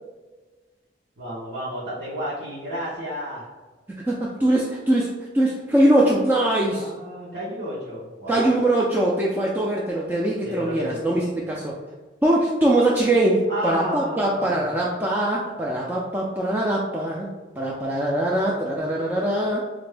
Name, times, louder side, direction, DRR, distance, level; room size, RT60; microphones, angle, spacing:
voice 1, 1.2-3.5 6.7-8.5 10.4-11.2 13.5-14.7, equal, 75° right, -9 dB, 1.0 m, -32 dB
voice 2, 3.9-5.1 5.3-6.9 8.3-11.8 12.2-17.3 17.6-19.6, right 1 dB, 10° right, -4 dB, 0.3 m, -22 dB
3.7 x 2.5 x 3.3 m, 1.3 s
head